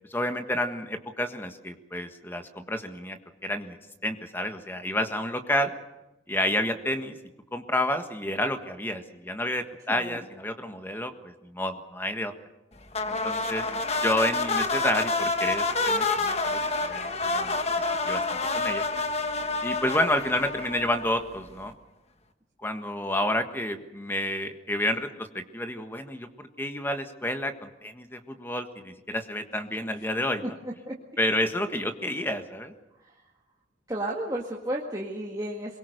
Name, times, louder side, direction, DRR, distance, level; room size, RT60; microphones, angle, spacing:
voice 1, 0.1-3.8 4.0-5.7 6.3-7.2 7.5-12.3 13.1-13.7 14.0-16.6 16.8-18.8 19.6-21.7 22.6-30.6 31.2-32.7, left 1 dB, 10° left, 7 dB, 1.5 m, -30 dB
sound 1, 12.9-21.4, left 3 dB, 35° left, 1.3 m, -28 dB
voice 2, 30.4-30.9 33.9-35.8, right 1 dB, 20° right, -2 dB, 1.9 m, -33 dB
23.0 x 22.0 x 6.7 m, 0.97 s
head